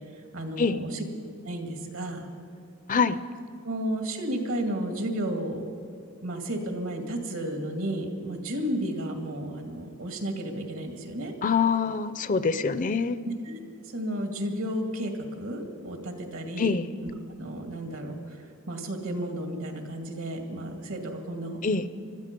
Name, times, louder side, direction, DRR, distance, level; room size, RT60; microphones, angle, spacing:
voice 1, 0.3-1.0 1.4-2.3 3.6-5.6 6.2-11.3 13.2-13.6 13.9-16.7 17.0-17.1 17.4-18.4 18.7-21.6, right 1 dB, 75° right, 4 dB, 2.2 m, -32 dB
voice 2, 11.4-13.2 16.6-16.9 21.6-21.9, left 5 dB, 40° left, 14 dB, 0.5 m, -25 dB
20.5 x 13.5 x 5.3 m, 2.6 s
head